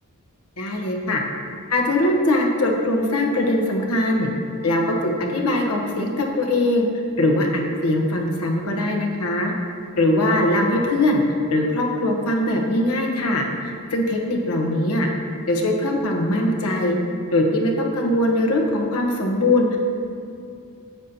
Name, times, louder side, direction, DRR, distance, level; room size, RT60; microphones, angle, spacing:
voice 1, 0.6-1.2 1.7-4.3 4.6-6.9 7.2-9.5 10.0-11.2 11.5-15.1 15.5-16.9 17.3-19.8, left 1 dB, 85° left, 1 dB, 1.1 m, -21 dB
9.1 x 7.3 x 2.8 m, 2.5 s
head